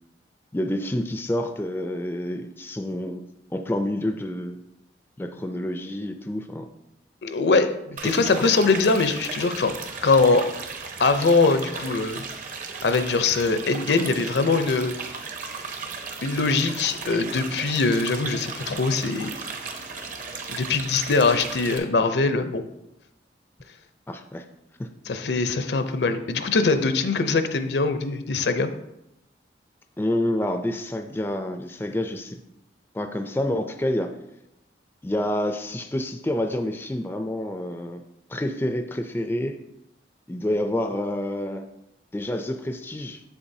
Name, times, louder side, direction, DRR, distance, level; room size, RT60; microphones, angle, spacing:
voice 1, 0.5-3.2 3.5-4.6 5.2-6.7 8.0-8.4 24.1-24.4 24.8-24.9 30.0-32.4 32.9-34.1 35.0-38.0 38.3-39.6 40.3-41.7 42.1-43.2, left 1 dB, 10° left, 6 dB, 0.3 m, -28 dB
voice 2, 7.2-9.7 10.0-10.5 11.0-12.2 12.8-14.9 16.2-19.3 20.5-22.6 25.1-28.7, left 3 dB, 70° left, 9 dB, 0.5 m, -22 dB
sound 1, 8.0-21.8, right 4 dB, 45° right, 0.8 m, -36 dB
7.2 x 7.0 x 2.7 m, 0.86 s
head